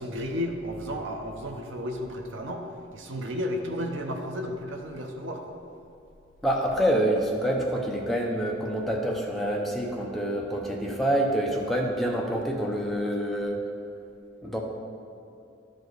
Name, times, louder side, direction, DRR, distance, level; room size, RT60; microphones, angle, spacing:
voice 1, 0.0-2.7 2.9-5.6, equal, 75° right, 3 dB, 0.9 m, -33 dB
voice 2, 6.4-13.6 14.4-14.6, right 1 dB, ahead, -1 dB, 0.6 m, -27 dB
12.0 x 5.1 x 4.0 m, 2.6 s
head